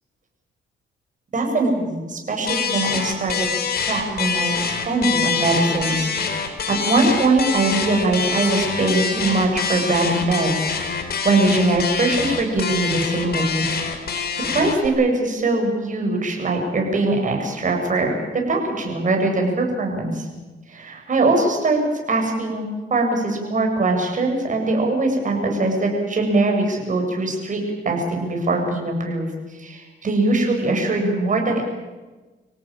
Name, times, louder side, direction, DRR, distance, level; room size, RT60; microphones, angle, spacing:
voice 1, 1.3-3.5 3.9-6.1 6.7-10.7 11.2-14.3 14.5-20.3 20.7-21.8 22.1-29.3 29.6-31.7, right 2 dB, 40° right, 2 dB, 7.9 m, -21 dB
sound 1, 2.5-14.9, left 6 dB, 50° left, 4.4 m, -25 dB
26.5 x 17.0 x 9.1 m, 1.2 s
cardioid pair, 90°, 20 cm